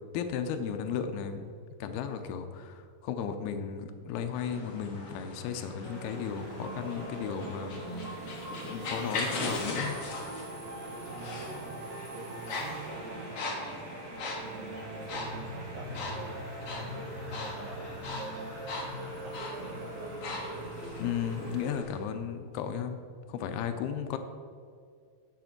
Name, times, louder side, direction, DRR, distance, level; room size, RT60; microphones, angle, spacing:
voice 1, 0.1-1.5 1.8-7.8 8.1-10.0 21.0-23.0 23.3-24.2, left 7 dB, 80° left, 8 dB, 2.4 m, -35 dB
sound 1, 4.3-22.0, left 2 dB, 60° left, 1.5 m, -40 dB
sound 2, 5.8-21.8, right 2 dB, 55° right, 1.9 m, -47 dB
sound 3, 6.5-21.8, equal, 35° right, 1.9 m, -43 dB
voice 2, 11.0-11.8 12.1-13.7 14.4-18.6 19.2-20.1, right 4 dB, 90° right, -2 dB, 1.6 m, -47 dB
9.4 x 7.4 x 5.9 m, 2.2 s
omnidirectional pair, 4.9 m